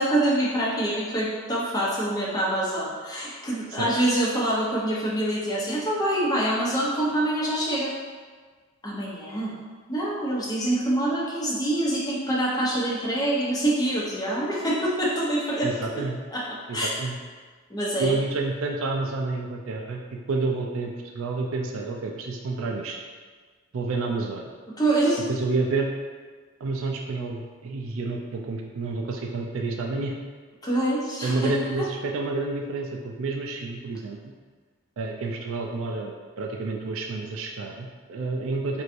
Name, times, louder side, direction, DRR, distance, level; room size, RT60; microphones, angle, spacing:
voice 1, 0.0-7.9 8.8-9.5 9.9-15.7 15.9-16.0 16.3-16.4 16.7-16.9 17.7-18.2 24.8-25.2 30.6-31.5, right 1 dB, 20° left, -6 dB, 0.7 m, -25 dB
voice 2, 15.6-16.2 16.7-17.2 18.0-23.0 23.7-24.5 25.3-25.9 26.6-30.1 31.2-34.2 35.0-38.8, right 3 dB, 70° right, 1 dB, 0.4 m, -29 dB
4.6 x 2.7 x 2.5 m, 1.5 s
head